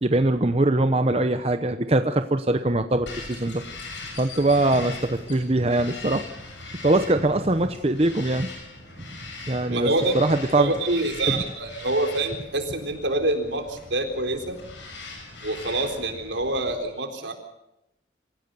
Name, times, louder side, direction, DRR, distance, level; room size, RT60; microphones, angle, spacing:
voice 1, 0.0-3.6 4.2-6.3 6.8-8.5 9.5-10.7 11.3-11.4, right 2 dB, 30° right, 8 dB, 0.8 m, -22 dB
Bird vocalization bird call bird song, 3.1-16.8, left 3 dB, 80° left, 7.0 m, -41 dB
voice 2, 9.7-10.2 10.6-14.6 15.4-17.3, right 2 dB, 80° right, 4 dB, 4.0 m, -26 dB
26.5 x 16.0 x 6.9 m, 0.87 s
head